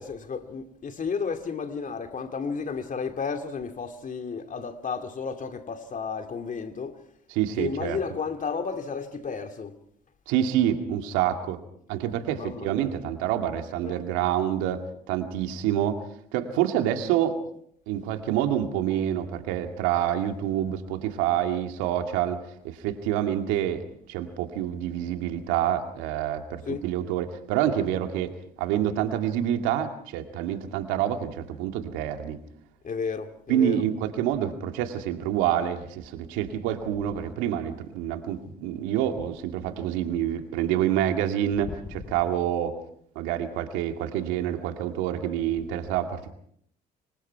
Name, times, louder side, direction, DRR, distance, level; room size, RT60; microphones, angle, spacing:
voice 1, 0.0-7.0 7.6-9.8 12.3-12.8 13.8-14.0 26.7-26.9 32.8-33.9 41.7-41.8 42.1-42.2, left 5 dB, 40° left, 2.5 m, -32 dB
voice 2, 7.3-8.0 10.3-11.6 11.9-16.0 16.3-17.4 17.9-32.4 33.5-42.7 43.2-46.3, right 11 dB, 75° right, 2.2 m, -27 dB
26.5 x 23.5 x 4.6 m
hypercardioid pair, 60°, 20 cm